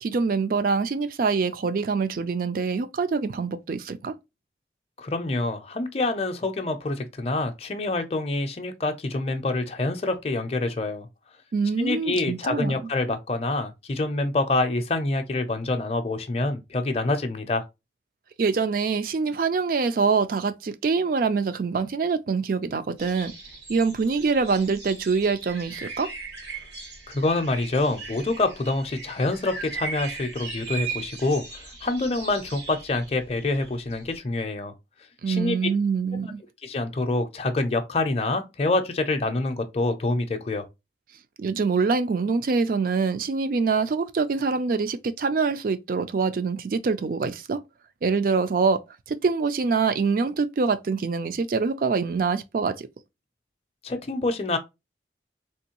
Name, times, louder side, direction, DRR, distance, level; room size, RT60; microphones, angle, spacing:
voice 1, 0.0-4.1 11.5-12.8 18.4-23.3 23.7-26.1 35.2-36.4 41.4-47.6 48.0-48.8 49.1-52.9, right 4 dB, 50° right, 0.4 m, -25 dB
voice 2, 5.0-11.1 11.8-17.6 27.1-34.7 35.3-35.6 36.6-40.7 53.8-54.6, left 2 dB, 35° left, 0.5 m, -26 dB
sound 1, 23.0-34.2, right 4 dB, 85° right, 1.5 m, -39 dB
3.5 x 3.0 x 2.9 m
head